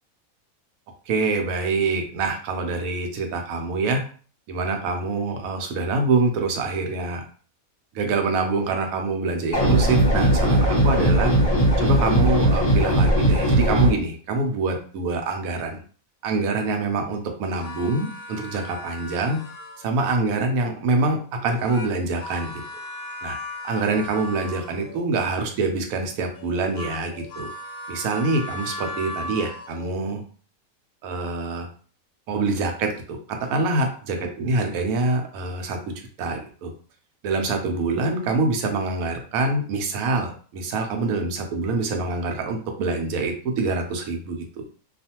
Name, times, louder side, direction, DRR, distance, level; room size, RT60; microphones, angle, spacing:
voice 1, 1.1-4.0 4.5-7.2 7.9-11.3 11.8-15.8 16.2-19.4 19.8-22.5 23.2-23.4 23.6-27.5 27.9-30.2 31.0-31.7 32.3-35.8 36.2-36.7 37.2-44.6, right 3 dB, 75° right, 3 dB, 1.0 m, -25 dB
sound 1, 9.5-13.9, right 1 dB, 30° left, 0.9 m, -18 dB
sound 2, 17.4-20.0 21.4-25.1 26.3-30.0, left 1 dB, 70° left, 0.9 m, -37 dB
2.4 x 2.4 x 2.8 m, 0.42 s
omnidirectional pair, 1.5 m